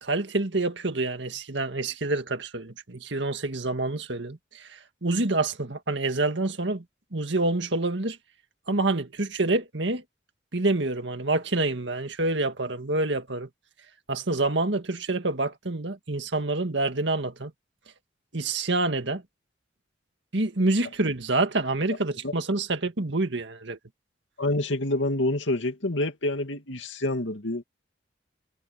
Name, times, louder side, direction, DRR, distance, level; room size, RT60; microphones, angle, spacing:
voice 1, 0.0-6.8 7.1-8.2 8.7-10.0 10.5-13.5 14.1-17.5 18.3-19.2 20.3-23.8, right 2 dB, 70° right, 1.9 m, -27 dB
voice 2, 24.4-27.6, left 1 dB, 75° left, 2.5 m, -27 dB
head